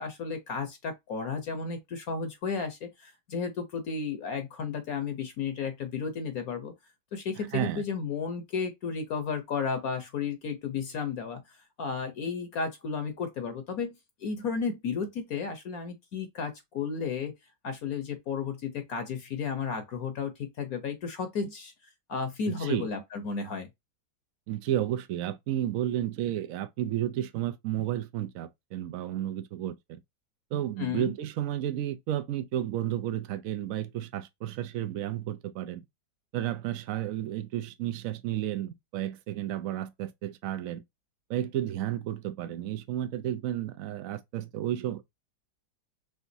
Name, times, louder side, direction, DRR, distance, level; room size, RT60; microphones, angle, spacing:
voice 1, 0.0-6.7 7.1-11.4 11.8-17.3 17.6-21.7 22.1-23.7 30.8-31.1, left 5 dB, 60° left, 1.2 m, -33 dB
voice 2, 7.4-7.8 22.5-22.9 24.5-30.0 30.5-35.8 36.3-40.8 41.3-45.0, right 12 dB, 65° right, 0.9 m, -32 dB
5.1 x 3.5 x 2.7 m
omnidirectional pair, 1.9 m